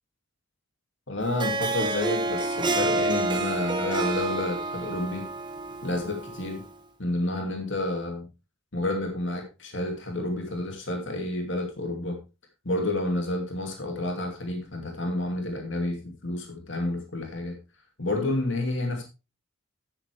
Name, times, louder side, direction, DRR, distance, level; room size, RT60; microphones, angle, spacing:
voice 1, 1.1-5.3 5.8-6.6 7.0-8.3 8.7-12.2 12.6-17.6 18.0-19.0, left 1 dB, 60° left, 3 dB, 2.4 m, -30 dB
Harp, 1.2-6.7, right 2 dB, 20° right, 1.3 m, -29 dB
10.5 x 9.6 x 3.4 m, 0.29 s
head